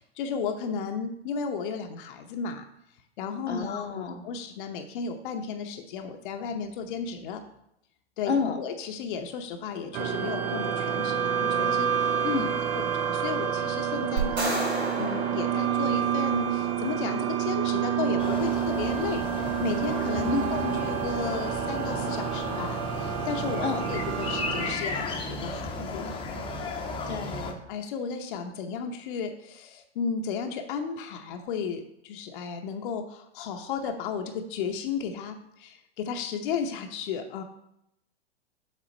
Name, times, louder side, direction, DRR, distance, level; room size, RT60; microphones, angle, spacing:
voice 1, 0.0-2.7 3.2-7.5 8.2-8.3 8.6-12.2 12.7-26.2 27.7-37.4, left 6 dB, 50° left, 5 dB, 0.8 m, -34 dB
voice 2, 3.5-4.2 8.3-8.6 12.2-12.6 20.3-20.5 23.6-23.8 27.1-27.6, left 5 dB, 80° left, 3 dB, 1.0 m, -29 dB
sound 1, 9.9-24.7, right 9 dB, 20° right, 0.4 m, -28 dB
sound 2, 14.2-16.5, right 2 dB, 80° right, 2.2 m, -32 dB
sound 3, 18.2-27.5, left 2 dB, 15° left, 0.8 m, -34 dB
7.4 x 3.8 x 5.3 m, 0.79 s
figure-of-eight pair, 105°, 33 cm